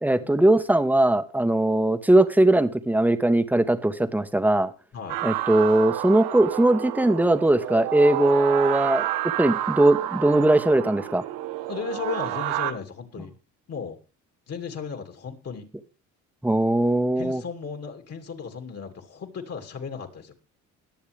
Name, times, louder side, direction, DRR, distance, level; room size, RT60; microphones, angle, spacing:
voice 1, 0.0-4.7 5.2-9.1 9.4-11.2 16.4-17.4, right 1 dB, 5° right, 11 dB, 1.2 m, -20 dB
sound 1, 5.1-12.7, right 14 dB, 80° right, 1.1 m, -30 dB
voice 2, 11.7-13.3 13.7-14.0 14.5-15.7 17.2-20.3, left 6 dB, 45° left, 5 dB, 2.6 m, -35 dB
21.0 x 7.2 x 3.5 m, 0.32 s
supercardioid pair, 80°, 34 cm